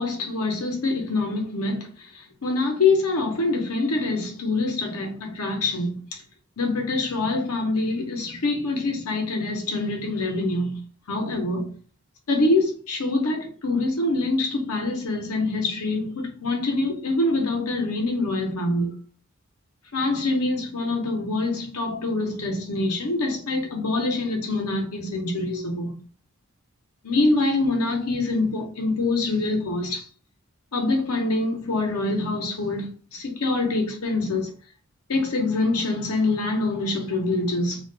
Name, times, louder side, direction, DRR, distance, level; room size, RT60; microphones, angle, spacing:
voice 1, 0.0-1.9 2.4-6.0 6.6-10.8 11.1-11.7 12.3-18.9 19.9-26.0 27.0-30.0 30.7-34.5 35.1-37.8, left 2 dB, 90° left, 0.9 m, -25 dB
2.5 x 2.2 x 3.9 m
head